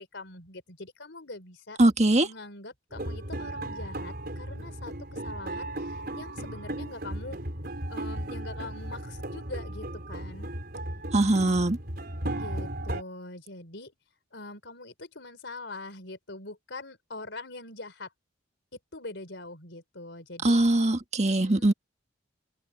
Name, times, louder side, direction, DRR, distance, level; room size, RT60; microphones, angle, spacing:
voice 1, 0.0-1.8 2.2-7.4 7.9-10.5 11.2-11.6 12.3-13.9 14.3-18.1 18.9-20.6 21.2-21.7, left 2 dB, 65° left, 4.6 m, -43 dB
voice 2, 1.8-2.3 11.1-11.8 20.4-21.7, right 1 dB, 35° right, 1.6 m, -22 dB
sound 1, 2.9-13.0, right 1 dB, 50° right, 5.2 m, -36 dB
open air
head